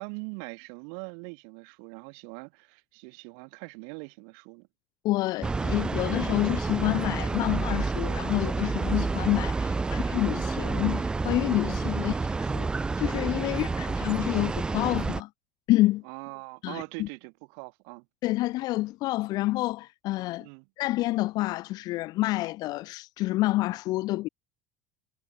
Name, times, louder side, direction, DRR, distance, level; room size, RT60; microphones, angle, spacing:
voice 1, 0.0-4.7 9.6-10.3 12.0-12.2 13.5-14.0 16.0-18.1 20.4-20.7, right 40 dB or more, 70° right, 5.5 m, -42 dB
voice 2, 5.0-12.7 13.0-15.3 15.7-16.0 16.6-17.1 18.2-20.5 20.8-24.3, left 18 dB, 45° left, 1.3 m, -28 dB
sound 1, 5.4-15.2, right 3 dB, 10° right, 0.4 m, -29 dB
cardioid pair, 170°, 9 cm